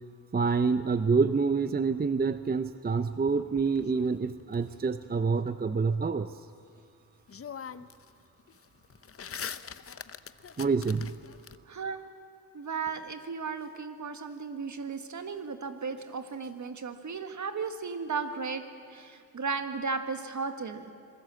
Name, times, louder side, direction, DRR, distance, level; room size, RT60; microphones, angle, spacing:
voice 1, 0.3-6.3 10.6-11.1, right 5 dB, 25° right, 12 dB, 0.6 m, -27 dB
sound 1, 3.3-4.6 6.8-6.9 7.3-8.1 8.4-11.6, left 7 dB, 40° left, 0.7 m, -43 dB
voice 2, 11.6-12.0 12.5-18.6 18.9-20.9, right 5 dB, 55° right, 8 dB, 1.7 m, -35 dB
26.5 x 20.5 x 7.6 m, 2.3 s
wide cardioid pair, 110°, 35 cm